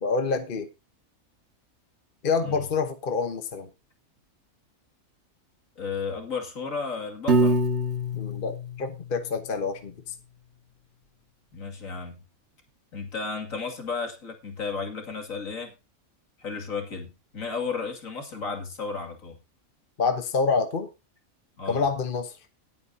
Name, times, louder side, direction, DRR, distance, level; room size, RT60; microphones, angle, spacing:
voice 1, 0.0-0.7 2.2-3.7 8.1-10.1 20.0-20.9 21.7-22.4, left 4 dB, 40° left, 7 dB, 1.2 m, -27 dB
voice 2, 5.8-7.6 11.5-12.2 12.9-15.7 16.4-19.4 21.6-21.9, left 4 dB, 70° left, 3 dB, 2.8 m, -33 dB
Piano, 7.3-9.5, right 1 dB, 50° right, 2.2 m, -25 dB
19.0 x 8.8 x 2.8 m, 0.26 s
omnidirectional pair, 1.5 m